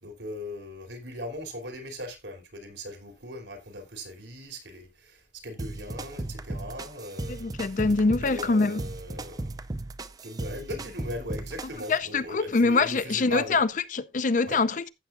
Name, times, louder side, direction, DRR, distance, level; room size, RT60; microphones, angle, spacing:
voice 1, 0.0-5.2 5.4-7.8 8.2-9.5 10.2-13.6 14.5-14.6, equal, 85° right, 3.0 m, -39 dB
sound 1, 5.6-12.0, right 2 dB, 20° right, 0.5 m, -36 dB
voice 2, 7.3-8.8 11.9-14.9, left 3 dB, 45° left, 0.5 m, -24 dB
14.5 x 7.0 x 2.5 m
head